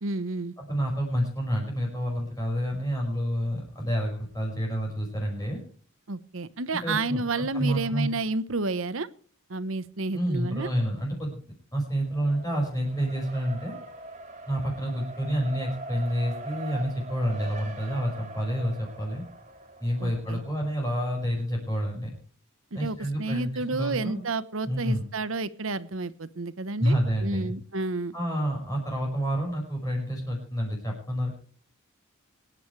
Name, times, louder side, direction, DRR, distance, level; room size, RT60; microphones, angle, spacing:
voice 1, 0.0-0.5 6.1-9.1 9.5-10.7 20.0-20.4 22.7-27.0 27.2-28.1, right 3 dB, 65° right, 15 dB, 1.1 m, -30 dB
voice 2, 0.7-5.6 6.8-8.1 10.1-11.4 11.7-13.7 14.5-19.2 19.8-22.2 22.7-24.2 24.6-25.0 26.8-27.5 28.1-31.4, equal, 15° left, -1 dB, 5.5 m, -29 dB
Race car auto racing, 11.9-21.0, right 2 dB, 35° right, 2.9 m, -42 dB
26.0 x 10.5 x 3.3 m, 0.43 s
head